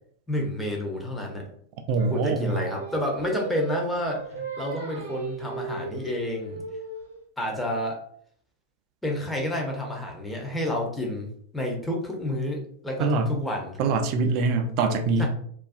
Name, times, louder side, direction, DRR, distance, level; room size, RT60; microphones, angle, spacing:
voice 1, 0.3-1.4 2.1-4.2 4.6-6.6 7.4-8.0 9.0-13.8 15.2-15.3, left 1 dB, 5° left, -1 dB, 0.6 m, -29 dB
voice 2, 1.9-2.5 13.0-13.3 13.8-15.3, right 4 dB, 40° right, 5 dB, 0.3 m, -23 dB
Singing, 2.0-7.2, right 3 dB, 70° right, 0.7 m, -36 dB
2.4 x 2.2 x 2.4 m, 0.62 s
figure-of-eight pair, 90°, 0 cm